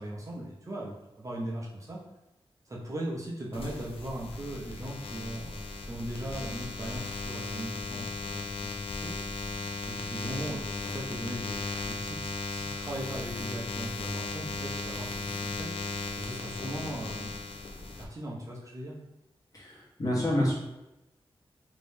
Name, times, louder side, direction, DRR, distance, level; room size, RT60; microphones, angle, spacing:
voice 1, 0.0-2.0 2.7-9.1 9.9-15.8 16.2-17.3 18.0-19.0, right 1 dB, 30° right, -4 dB, 0.6 m, -39 dB
sound 1, 3.5-18.0, left 3 dB, 70° left, 0.5 m, -36 dB
voice 2, 19.5-20.5, left 1 dB, 35° left, -6 dB, 1.1 m, -28 dB
3.0 x 2.7 x 3.4 m, 0.95 s
wide cardioid pair, 130°, 10 cm